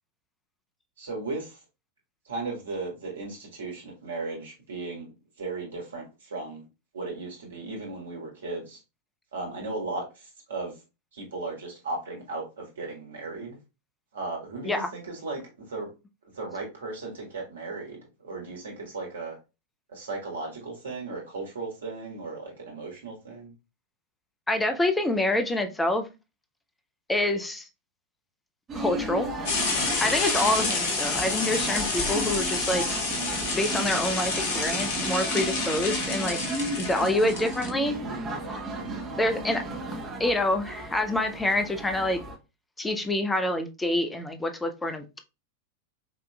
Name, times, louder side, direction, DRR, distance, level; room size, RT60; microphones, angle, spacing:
voice 1, 1.0-1.6 2.3-5.1 5.4-6.6 6.9-8.8 9.3-10.1 10.5-10.7 11.1-13.6 14.1-15.4 15.7-15.9 16.3-19.3 19.9-23.5 38.8-39.1, right 3 dB, 65° right, 1.6 m, -36 dB
voice 2, 24.5-26.0 27.1-27.6 28.7-29.3 30.0-32.8 33.5-36.4 36.8-38.0 39.2-39.6 40.2-42.2 42.8-45.2, left 1 dB, 10° left, 0.6 m, -26 dB
sound 1, 28.7-42.3, right 2 dB, 25° right, 1.2 m, -35 dB
sound 2, 29.5-37.7, left 3 dB, 50° left, 1.0 m, -29 dB
5.1 x 2.9 x 2.3 m
figure-of-eight pair, 90°, 0 cm